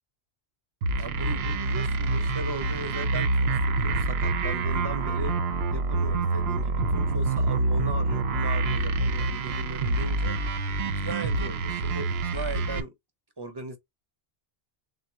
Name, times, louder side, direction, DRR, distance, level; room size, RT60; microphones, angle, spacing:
sound 1, 0.8-12.8, right 3 dB, 70° right, 0.9 m, -26 dB
voice 1, 0.9-5.4 5.7-10.4 10.8-12.9 13.4-13.8, right 2 dB, 25° right, 0.8 m, -38 dB
3.7 x 2.3 x 4.4 m
omnidirectional pair, 1.1 m